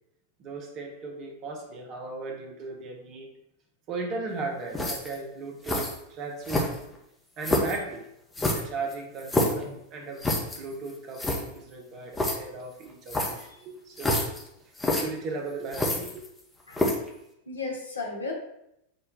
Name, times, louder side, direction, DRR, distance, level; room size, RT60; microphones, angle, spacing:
voice 1, 0.4-3.3 3.9-6.7 7.4-8.0 8.4-10.2 10.6-14.2 15.0-16.2, right 3 dB, 35° right, 1 dB, 0.7 m, -37 dB
sound 1, 4.7-5.2 5.6-6.0 6.4-6.9 7.4-7.8 8.3-9.6 10.2-10.6 10.9-11.0 11.2-11.4 12.1-12.4 13.1-13.5 14.0-14.4 14.8-15.0 15.7-16.4 16.7-17.1, left 1 dB, 10° left, 0.6 m, -27 dB
voice 2, 9.4-9.8 16.7-16.8 17.5-18.3, left 3 dB, 75° left, -1 dB, 0.7 m, -35 dB
5.1 x 2.2 x 2.2 m, 0.80 s
figure-of-eight pair, 90°, 0 cm